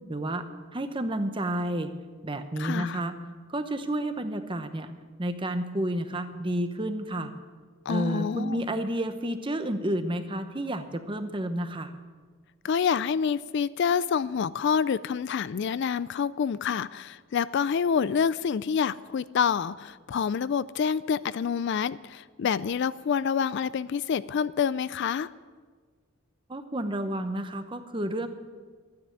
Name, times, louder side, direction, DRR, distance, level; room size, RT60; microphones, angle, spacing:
voice 1, 0.1-0.4 0.7-1.9 2.2-3.1 3.5-4.9 5.2-7.3 7.9-11.9 26.5-28.3, right 1 dB, 25° right, 9 dB, 0.9 m, -30 dB
voice 2, 2.6-3.0 7.9-8.6 12.6-25.3, left 7 dB, 55° left, 17 dB, 0.3 m, -27 dB
12.5 x 9.6 x 9.3 m, 1.5 s
head